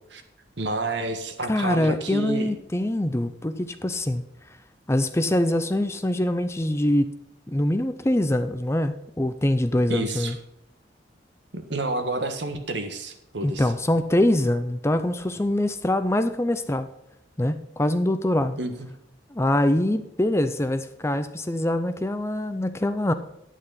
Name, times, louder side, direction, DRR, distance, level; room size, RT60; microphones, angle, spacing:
voice 1, 0.6-2.5 9.9-10.3 11.5-13.7 18.6-18.9, right 2 dB, 70° right, 7 dB, 1.6 m, -30 dB
voice 2, 1.5-4.2 4.9-7.1 7.5-10.4 13.4-16.9 17.4-18.6 19.3-23.1, left 1 dB, 15° left, 10 dB, 0.5 m, -24 dB
9.5 x 9.2 x 4.1 m, 0.83 s
head